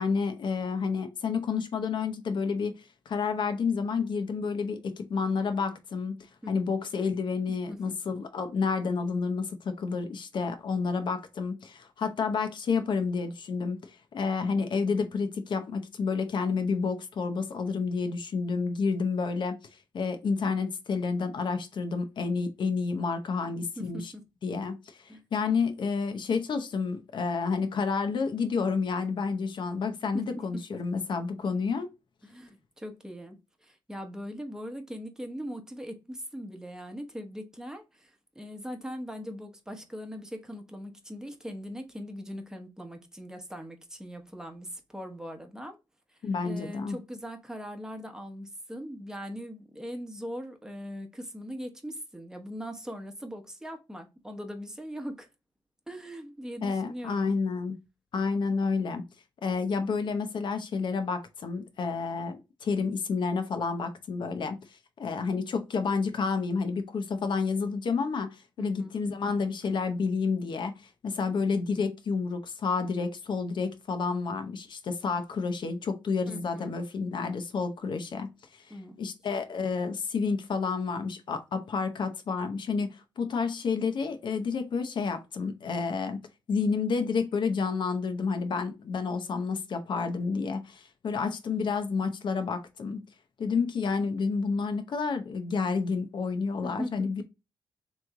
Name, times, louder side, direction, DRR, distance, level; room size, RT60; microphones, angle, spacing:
voice 1, 0.0-2.7 3.1-6.2 6.5-19.6 19.9-24.1 24.4-25.0 25.3-31.9 46.2-47.0 56.6-57.8 58.1-59.1 59.4-64.6 65.0-70.7 71.0-78.3 79.0-86.2 86.5-93.0 93.4-97.2, left 5 dB, 60° left, 0.8 m, -30 dB
voice 2, 7.5-7.9 23.8-24.2 25.1-25.2 30.1-30.8 32.2-45.8 46.4-55.3 55.9-57.3 68.6-68.9 76.3-76.7 78.7-79.0 96.6-97.2, equal, 5° right, 1.0 m, -40 dB
3.4 x 3.1 x 3.7 m
cardioid pair, 85°, 9 cm